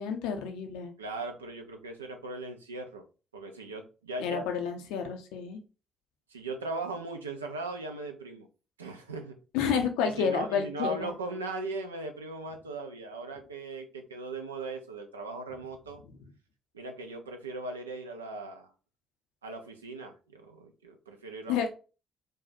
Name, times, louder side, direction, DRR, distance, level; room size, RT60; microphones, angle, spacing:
voice 1, 0.0-0.9 4.2-5.6 9.5-11.2 21.5-21.7, left 7 dB, 65° left, 6 dB, 0.5 m, -30 dB
voice 2, 1.0-3.0 3.3-4.4 6.3-8.5 8.8-9.3 10.0-16.0 16.7-18.7 19.4-21.6, right 2 dB, 80° right, 4 dB, 0.4 m, -38 dB
2.6 x 2.3 x 4.0 m, 0.34 s
figure-of-eight pair, 45°, 0 cm